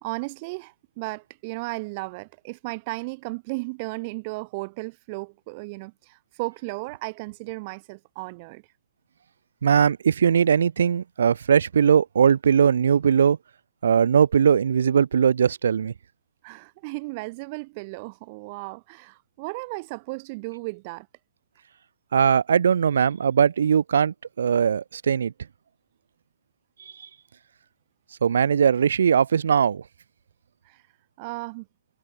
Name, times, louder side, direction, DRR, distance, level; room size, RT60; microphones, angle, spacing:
voice 1, 0.0-8.6 16.4-21.1 30.6-30.8 31.2-31.7, right 27 dB, 35° right, 2.0 m, -35 dB
voice 2, 9.6-13.4 13.8-15.9 22.1-25.3 27.0-27.1 28.2-29.8, right 7 dB, 80° right, 2.7 m, -20 dB
hypercardioid pair, 155°, 0 cm